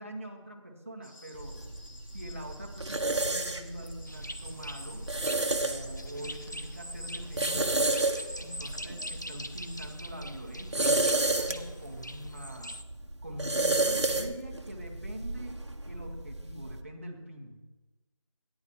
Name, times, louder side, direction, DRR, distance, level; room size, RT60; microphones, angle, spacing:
voice 1, 0.0-1.6 2.1-5.0 5.6-7.8 8.4-12.7 13.2-15.5 15.8-17.6, equal, 25° right, 1 dB, 1.0 m, -43 dB
sound 1, 1.0-10.0, left 1 dB, 85° left, 2.8 m, -55 dB
sound 2, 1.3-16.8, right 2 dB, 60° right, 1.0 m, -32 dB
sound 3, 4.1-12.8, equal, 35° left, 0.4 m, -44 dB
14.5 x 9.7 x 2.8 m, 1.2 s
figure-of-eight pair, 175°, 16 cm